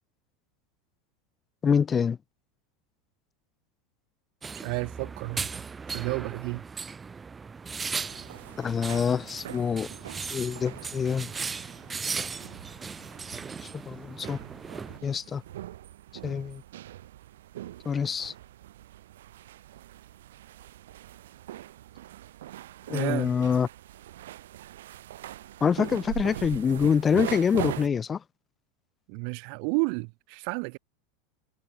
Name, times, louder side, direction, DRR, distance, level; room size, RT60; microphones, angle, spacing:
voice 1, 1.6-2.2 8.6-9.9 10.3-11.3 13.6-14.4 15.0-15.4 16.2-16.6 17.9-18.3 22.9-23.7 25.6-28.2, left 6 dB, 20° left, 0.4 m, -26 dB
sound 1, 4.4-15.0, right 5 dB, 15° right, 0.6 m, -37 dB
voice 2, 4.5-6.6 22.9-23.4 29.1-30.8, right 40 dB or more, 55° right, 1.9 m, -32 dB
sound 2, 8.0-27.9, right 13 dB, 85° right, 1.5 m, -42 dB
supercardioid pair, 140°, 0 cm